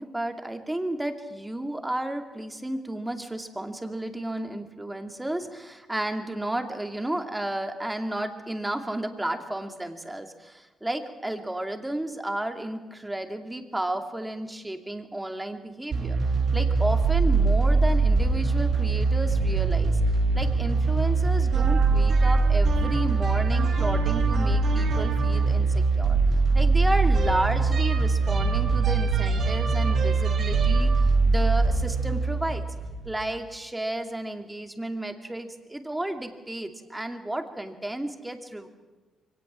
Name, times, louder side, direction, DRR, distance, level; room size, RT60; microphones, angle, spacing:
voice 1, 0.0-16.2 16.5-20.0 20.3-26.2 26.5-30.9 31.3-32.7 33.1-38.7, right 1 dB, 10° right, 6 dB, 2.5 m, -32 dB
sound 1, 15.9-33.2, right 3 dB, 55° right, 2.7 m, -22 dB
23.0 x 18.5 x 7.5 m, 1.2 s
cardioid pair, 90°, 0 cm